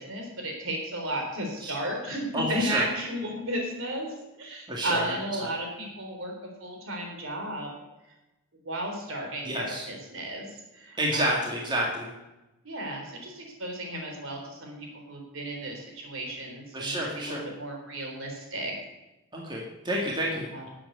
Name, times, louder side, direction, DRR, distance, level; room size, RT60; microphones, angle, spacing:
voice 1, 0.0-4.1 4.4-7.7 8.6-11.4 12.6-18.7 20.5-20.7, right 1 dB, 60° right, 1 dB, 3.8 m, -34 dB
voice 2, 2.3-2.8 4.7-5.0 9.4-9.9 11.0-12.1 16.7-17.5 19.3-20.5, right 1 dB, 20° right, -3 dB, 2.2 m, -29 dB
12.5 x 8.0 x 8.1 m, 1.0 s
head